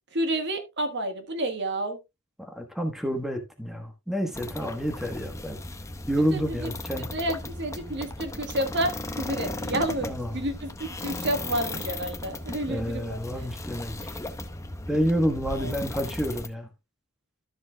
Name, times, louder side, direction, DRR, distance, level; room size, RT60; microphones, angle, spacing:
voice 1, 0.1-2.0 6.3-6.7 7.1-13.2 15.6-15.7, right 1 dB, 50° right, 1.5 m, -30 dB
voice 2, 2.4-5.6 6.1-7.1 10.0-10.4 12.7-14.0 14.9-16.7, equal, ahead, 1.2 m, -29 dB
sound 1, 4.3-16.5, left 1 dB, 15° left, 0.8 m, -36 dB
13.0 x 7.1 x 2.3 m
head